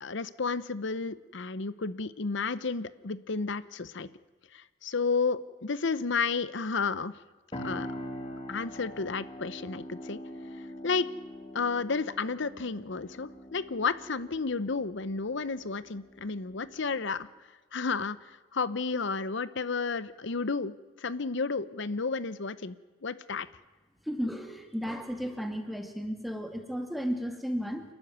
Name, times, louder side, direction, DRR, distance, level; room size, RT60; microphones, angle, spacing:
voice 1, 0.0-4.1 4.5-7.1 7.5-7.9 8.5-10.2 10.6-11.1 11.5-17.3 17.7-22.8 23.0-23.5, left 4 dB, 60° left, 16 dB, 0.8 m, -32 dB
sound 1, 7.5-17.2, equal, 25° left, 2.3 m, -44 dB
voice 2, 24.1-27.8, equal, ahead, 4 dB, 2.4 m, -34 dB
29.0 x 12.5 x 9.4 m, 1.3 s
head